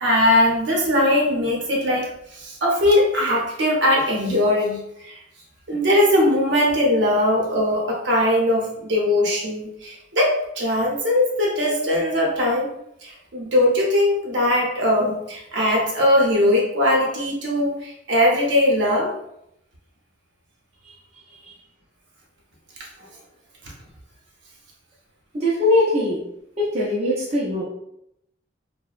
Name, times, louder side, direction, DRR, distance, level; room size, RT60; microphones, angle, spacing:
voice 1, 0.0-5.2 5.7-12.7 13.0-19.1, left 1 dB, 65° right, -2 dB, 0.7 m, -20 dB
voice 2, 25.3-26.2 26.6-27.6, left 1 dB, 35° right, -6 dB, 0.4 m, -21 dB
2.7 x 2.0 x 2.3 m, 0.78 s
head